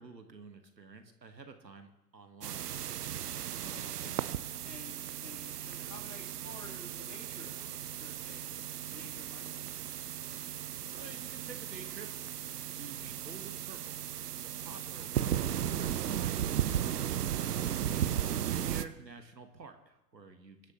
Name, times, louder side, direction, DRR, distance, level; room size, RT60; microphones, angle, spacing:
voice 1, 0.0-2.6 10.9-12.1 12.7-14.0 14.2-16.6 17.3-20.7, right 4 dB, 85° right, 6 dB, 1.8 m, -50 dB
sound 1, 2.4-18.8, right 10 dB, 70° right, 0.8 m, -36 dB
voice 2, 3.6-4.2 4.6-8.5 8.8-9.7, left 2 dB, 70° left, 0 dB, 3.5 m, -52 dB
23.5 x 11.5 x 3.1 m, 1.0 s
figure-of-eight pair, 105°, 49 cm